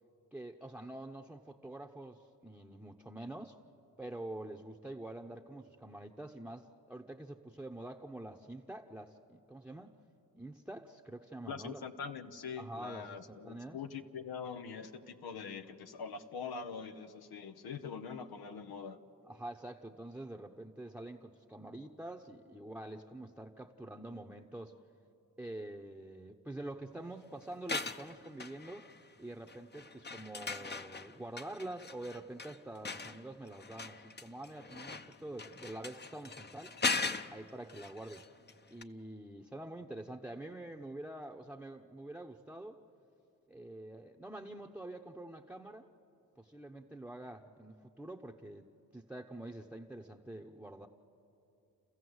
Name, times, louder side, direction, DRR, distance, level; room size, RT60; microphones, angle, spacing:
voice 1, 0.3-3.6 4.0-10.0 10.3-11.8 12.6-13.8 19.2-24.7 25.4-28.9 29.2-36.7 37.3-38.3 38.7-42.8 43.5-45.8 46.4-48.7 48.9-50.9, right 1 dB, 5° right, 2 dB, 0.9 m, -46 dB
voice 2, 11.5-19.0, left 6 dB, 85° left, 7 dB, 1.0 m, -43 dB
sound 1, 27.5-29.1 29.5-38.5 38.8-38.9, left 4 dB, 30° left, 0.8 m, -40 dB
29.5 x 15.0 x 8.0 m, 2.8 s
cardioid pair, 60°, 36 cm